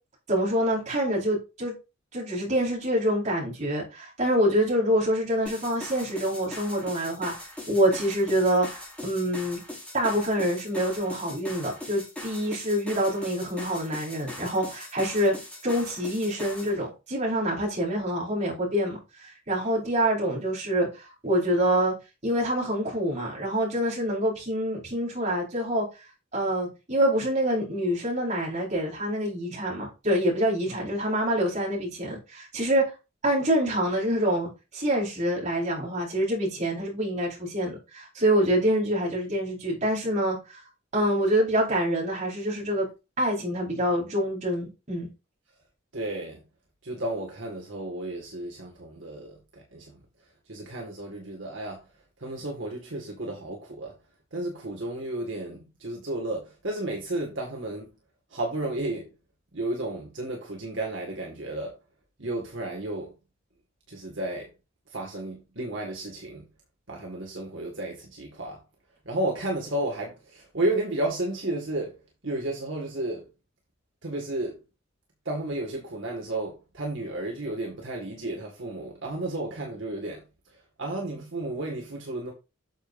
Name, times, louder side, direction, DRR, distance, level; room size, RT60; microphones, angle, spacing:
voice 1, 0.3-1.7 2.1-7.3 7.7-8.7 9.0-9.6 9.9-15.3 15.6-21.9 22.2-25.8 26.3-32.9 33.2-40.6 40.9-42.9 43.2-45.1, equal, 35° right, 4.8 m, -26 dB
sound 1, 5.5-16.8, left 1 dB, 5° left, 4.9 m, -41 dB
voice 2, 45.9-46.4 46.8-51.9 52.2-54.0 54.3-57.9 58.3-59.1 59.5-61.8 62.2-63.1 63.9-64.5 64.9-66.5 66.9-68.6 69.0-73.3 74.0-74.6 75.3-82.3, right 1 dB, 60° right, 2.1 m, -33 dB
8.9 x 7.0 x 2.7 m
head